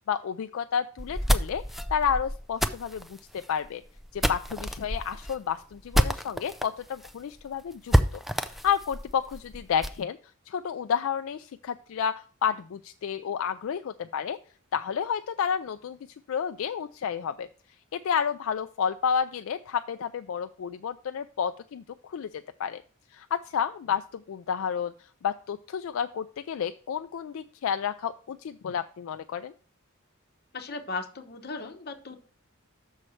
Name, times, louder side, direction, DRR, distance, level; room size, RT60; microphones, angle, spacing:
voice 1, 0.1-1.6 1.9-3.8 4.1-10.2 10.5-14.4 14.7-16.0 16.3-17.5 17.9-22.8 23.1-24.9 25.2-29.5, left 7 dB, 70° left, 9 dB, 0.3 m, -31 dB
sound 1, 1.0-6.7 7.0-7.1 7.4-7.5 7.9-10.0, equal, ahead, 0.4 m, -28 dB
voice 2, 30.5-32.2, left 3 dB, 50° left, 6 dB, 1.0 m, -37 dB
6.4 x 4.3 x 6.4 m, 0.41 s
head